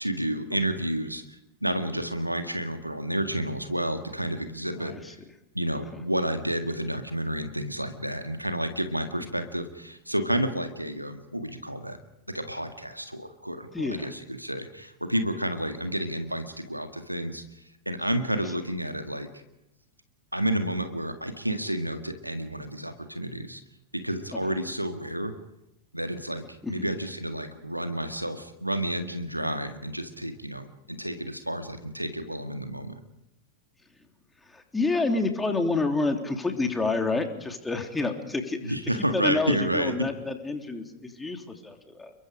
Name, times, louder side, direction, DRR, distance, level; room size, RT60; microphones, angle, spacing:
voice 1, 0.0-5.0 5.5-12.0 12.3-17.4 17.9-19.3 20.3-23.6 23.9-25.3 25.9-33.0 38.6-39.9, right 1 dB, 90° right, 7 dB, 1.8 m, -30 dB
voice 2, 4.8-5.1 5.9-6.0 13.7-14.1 24.5-24.6 26.6-26.9 34.4-38.7 39.1-42.1, left 3 dB, 10° left, 4 dB, 3.2 m, -29 dB
30.0 x 22.5 x 5.1 m, 0.88 s
figure-of-eight pair, 90°, 0 cm